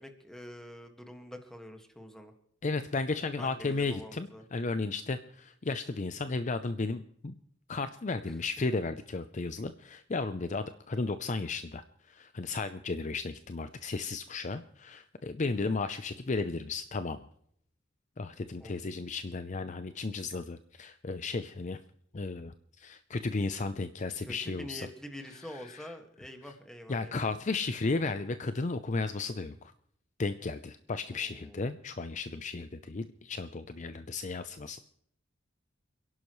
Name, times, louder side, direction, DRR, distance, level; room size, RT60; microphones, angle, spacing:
voice 1, 0.0-2.3 3.4-4.4 8.2-8.4 18.6-18.7 24.2-27.4 31.1-31.6, left 1 dB, 5° left, 4 dB, 1.8 m, -46 dB
voice 2, 2.6-7.4 7.7-17.2 18.2-21.8 22.1-24.9 25.5-25.9 26.9-29.7 30.2-34.8, left 3 dB, 40° left, 11 dB, 0.5 m, -34 dB
29.5 x 11.0 x 3.1 m, 0.68 s
head